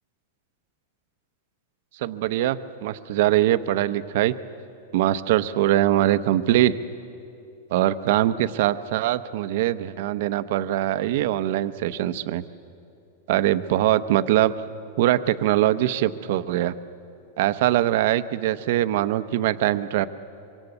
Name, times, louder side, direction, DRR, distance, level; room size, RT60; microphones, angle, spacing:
voice 1, 1.9-4.3 4.9-6.8 7.7-12.4 13.3-14.5 15.0-16.7 17.4-20.1, right 13 dB, 50° right, 12 dB, 0.8 m, -22 dB
25.0 x 24.5 x 8.1 m, 2.7 s
supercardioid pair, 170°, 0 cm